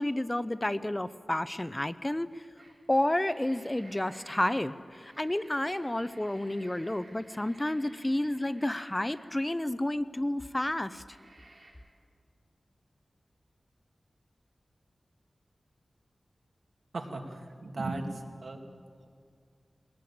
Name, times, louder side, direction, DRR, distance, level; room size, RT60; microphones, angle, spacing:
voice 1, 0.0-2.4 2.9-11.0, left 1 dB, 15° left, 14 dB, 0.6 m, -30 dB
sound 1, 2.6-2.7 3.0-9.9 10.4-10.5 11.0-11.7, right 2 dB, 55° right, 5.0 m, -57 dB
voice 2, 16.9-18.6, right 2 dB, 80° right, 3 dB, 2.4 m, -37 dB
21.5 x 18.5 x 8.7 m, 2.1 s
wide cardioid pair, 90°, 0 cm